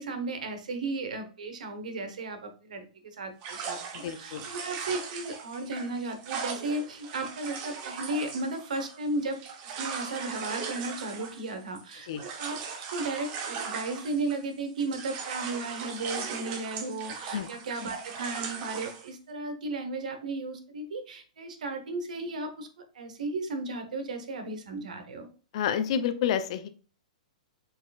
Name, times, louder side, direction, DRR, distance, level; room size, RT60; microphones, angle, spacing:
voice 1, 0.0-9.4 9.6-22.7 22.9-25.3, right 2 dB, 80° right, 7 dB, 1.1 m, -35 dB
sound 1, 3.4-14.5 14.8-19.1, right 6 dB, 30° right, 0.8 m, -39 dB
voice 2, 3.9-4.5 12.1-12.2 17.3-17.5 25.5-26.7, left 8 dB, 50° left, 11 dB, 0.5 m, -29 dB
4.6 x 4.2 x 2.3 m, 0.39 s
hypercardioid pair, 155°, 4 cm